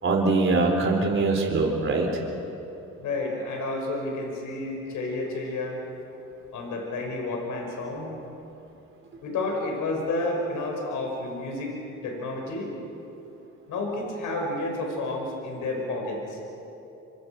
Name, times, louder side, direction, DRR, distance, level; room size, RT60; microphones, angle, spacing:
voice 1, 0.0-2.2, right 3 dB, 45° right, 0 dB, 4.1 m, -23 dB
voice 2, 3.0-5.8 6.5-8.1 9.2-11.7 12.0-12.8 13.7-16.4, left 2 dB, 80° left, 1 dB, 5.6 m, -30 dB
26.0 x 25.0 x 6.1 m, 2.8 s
cardioid pair, 90°, 30 cm